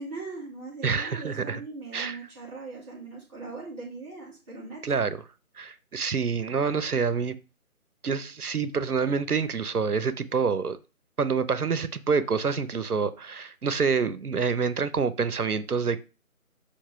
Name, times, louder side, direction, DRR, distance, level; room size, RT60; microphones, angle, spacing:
voice 1, 0.0-5.0, right 3 dB, 20° right, 1.5 m, -40 dB
voice 2, 0.8-1.6 1.9-2.2 4.8-5.2 5.6-7.4 8.0-10.8 11.2-16.0, right 5 dB, 85° right, 0.8 m, -27 dB
6.7 x 2.9 x 5.6 m
figure-of-eight pair, 160°, 44 cm